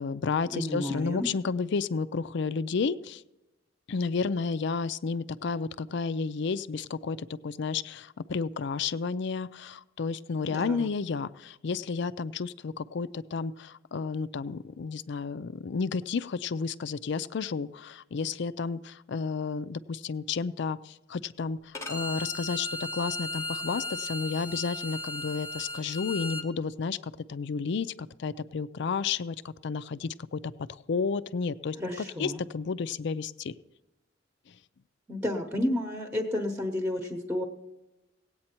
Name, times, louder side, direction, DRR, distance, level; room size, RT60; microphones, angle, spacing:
voice 1, 0.0-3.2 3.9-27.9 28.2-33.5 34.5-34.6, left 5 dB, 65° left, 15 dB, 0.4 m, -32 dB
voice 2, 0.5-1.3 10.5-10.9 31.8-32.4 35.1-37.4, left 1 dB, 10° right, 3 dB, 1.0 m, -31 dB
Bowed string instrument, 21.7-26.5, left 2 dB, 15° left, 0.9 m, -36 dB
17.5 x 8.7 x 4.4 m, 1.0 s
head